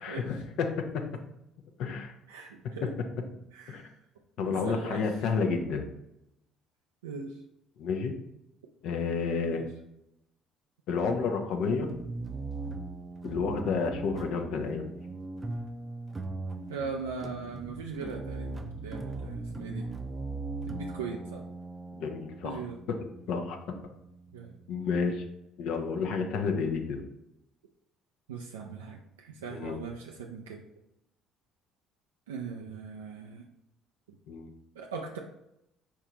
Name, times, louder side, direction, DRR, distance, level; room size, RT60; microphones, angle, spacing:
voice 1, 0.0-0.7 1.8-2.1 2.8-2.9 3.7-3.8 4.4-5.8 7.8-8.1 8.8-9.6 10.9-11.9 13.2-14.9 21.9-22.6 22.9-23.0 23.3-23.6 24.7-25.2 25.6-27.0 29.5-29.8 34.3-34.5, left 5 dB, 65° left, 5 dB, 0.6 m, -30 dB
voice 2, 2.3-2.8 3.5-3.9 4.4-5.0 7.0-7.4 9.5-9.6 16.7-19.9 20.7-21.4 22.4-22.8 24.3-24.6 28.3-30.6 32.3-33.5 34.8-35.2, right 5 dB, 85° right, 1 dB, 0.3 m, -40 dB
sound 1, 11.9-24.7, right 3 dB, 25° right, 0.5 m, -39 dB
4.6 x 3.6 x 2.8 m, 0.84 s
hypercardioid pair, 55°, 0 cm